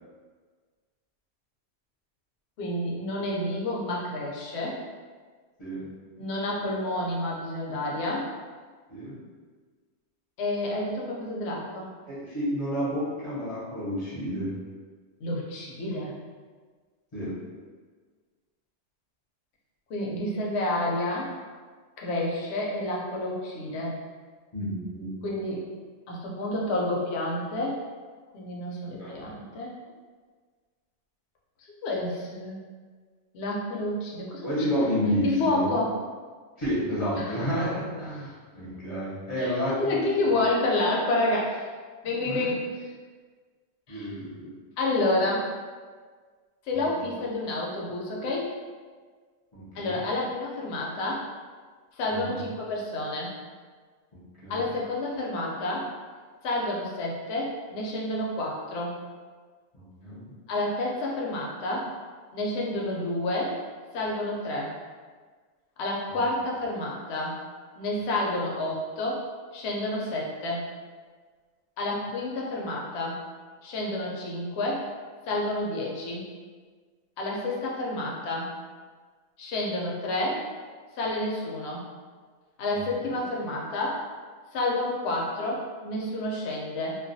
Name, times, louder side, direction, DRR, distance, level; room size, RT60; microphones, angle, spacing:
voice 1, 2.6-4.8 6.2-8.3 10.4-11.9 15.2-16.1 19.9-21.3 22.0-23.9 25.2-25.6 26.1-27.8 28.3-29.7 31.8-32.6 33.3-34.5 35.2-35.9 37.2-37.4 39.4-41.7 42.0-42.6 43.9-44.1 44.8-45.5 46.7-48.5 49.7-51.2 52.0-53.3 54.5-55.9 56.4-59.0 60.5-61.9 62.3-63.6 63.9-64.7 65.8-67.4 67.8-69.2 69.5-70.6 71.8-73.2 73.6-74.9 75.3-76.2 77.2-78.5 79.4-80.4 81.0-81.8 82.6-84.0 84.5-86.9, left 2 dB, 70° left, -3 dB, 0.8 m, -29 dB
voice 2, 12.1-14.5 17.1-17.3 24.5-25.1 29.0-29.1 34.4-35.7 36.6-40.4 42.0-42.5 43.9-44.5 46.7-47.0 49.5-50.0 52.1-52.5 54.1-54.6 59.7-60.3 66.1-66.2 83.0-83.1, equal, 35° left, -10 dB, 0.6 m, -31 dB
2.3 x 2.2 x 2.5 m, 1.5 s
omnidirectional pair, 1.2 m